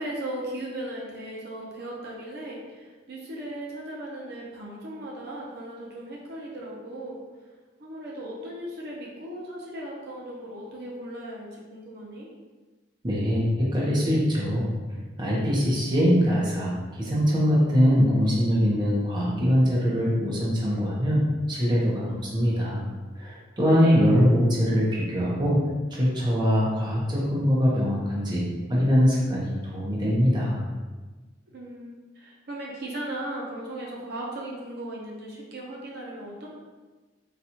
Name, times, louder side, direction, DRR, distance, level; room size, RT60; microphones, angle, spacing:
voice 1, 0.0-7.2 7.8-12.3 23.7-24.0 31.5-36.5, right 1 dB, 60° right, -3 dB, 0.6 m, -37 dB
voice 2, 13.0-14.7 15.2-21.2 21.5-22.8 23.2-25.6 25.9-30.6, equal, 25° right, -5 dB, 0.7 m, -23 dB
4.0 x 2.3 x 2.8 m, 1.3 s
head